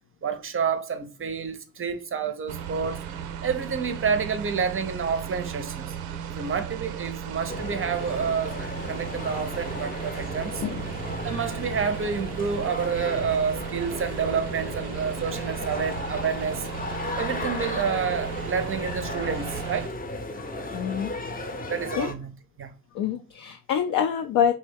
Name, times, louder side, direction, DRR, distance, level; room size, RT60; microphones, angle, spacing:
voice 1, 0.2-3.0 3.4-6.0 6.3-10.6 11.2-16.7 17.2-19.9 21.7-22.3 22.6-22.7, right 6 dB, 30° right, 0.6 m, -29 dB
sound 1, 2.5-19.9, right 8 dB, 80° right, 0.6 m, -36 dB
sound 2, 7.5-22.1, left 2 dB, 20° left, 0.7 m, -35 dB
voice 2, 20.7-21.1 22.0-22.1 23.0-24.5, left 8 dB, 50° left, 0.5 m, -25 dB
3.2 x 2.7 x 3.5 m
hypercardioid pair, 45°, 47 cm